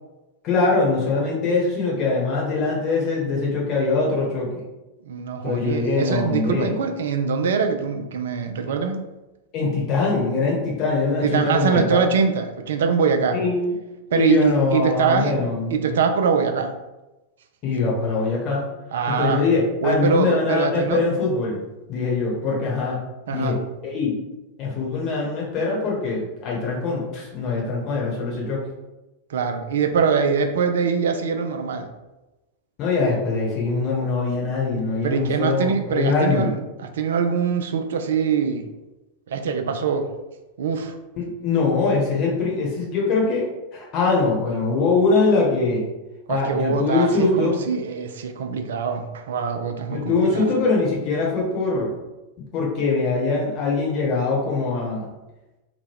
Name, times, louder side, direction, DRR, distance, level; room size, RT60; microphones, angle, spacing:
voice 1, 0.4-4.5 5.4-6.7 9.5-12.0 13.3-13.7 14.1-15.9 17.6-18.7 19.1-21.6 21.9-23.0 23.3-23.6 23.8-24.2 24.6-28.6 32.8-36.5 41.2-45.9 46.3-47.6 49.9-51.9 52.5-55.1, left 3 dB, 35° left, -3 dB, 0.9 m, -22 dB
voice 2, 5.1-9.0 11.2-13.4 14.1-16.7 18.9-19.5 19.8-21.0 23.3-23.6 29.3-31.9 35.0-36.6 36.8-38.6 39.3-40.1 40.6-41.0 46.3-50.5, right 6 dB, 60° right, 6 dB, 0.3 m, -23 dB
2.8 x 2.1 x 3.5 m, 1.0 s
figure-of-eight pair, 90°, 0 cm